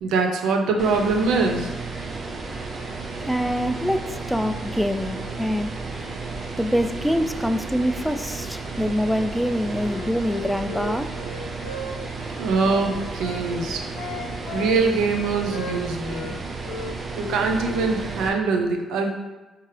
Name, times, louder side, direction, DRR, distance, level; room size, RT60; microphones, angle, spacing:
voice 1, 0.0-1.7 12.3-13.8 14.5-16.4 17.2-19.1, right 4 dB, 85° right, 3 dB, 0.6 m, -23 dB
sound 1, 0.8-18.3, right 3 dB, 40° right, 0.7 m, -33 dB
voice 2, 3.2-5.7 6.0-6.1 6.6-11.1, equal, ahead, 8 dB, 0.3 m, -25 dB
Wind instrument woodwind instrument, 9.8-13.5 13.9-16.4 16.6-17.9, left 3 dB, 85° left, 0.5 m, -36 dB
4.5 x 3.5 x 3.2 m, 1.2 s
cardioid pair, 90°, 0 cm